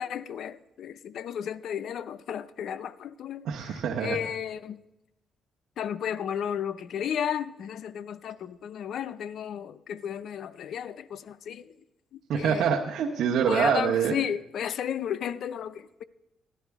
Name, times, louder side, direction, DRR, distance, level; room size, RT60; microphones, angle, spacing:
voice 1, 0.0-4.8 5.8-11.7 12.1-12.7 13.5-16.0, left 9 dB, 70° left, 0.4 m, -33 dB
voice 2, 3.4-4.2 12.3-14.2, right 7 dB, 75° right, 1.0 m, -25 dB
16.5 x 11.0 x 3.5 m
cardioid pair, 90°, 0 cm